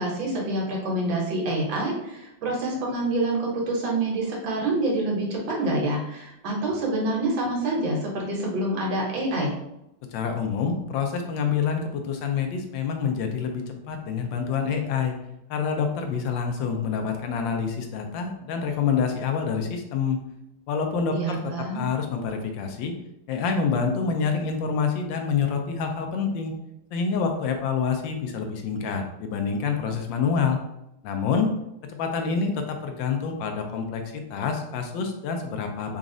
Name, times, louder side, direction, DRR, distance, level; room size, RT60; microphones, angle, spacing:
voice 1, 0.0-9.6 21.1-21.8, right 2 dB, 75° right, -1 dB, 1.7 m, -27 dB
voice 2, 10.1-15.1 15.5-20.2 20.7-21.4 21.7-22.9 23.3-26.5 26.9-30.6 31.0-31.5 31.9-36.0, left 6 dB, 75° left, 4 dB, 1.3 m, -27 dB
4.0 x 2.5 x 3.7 m, 0.84 s
omnidirectional pair, 2.2 m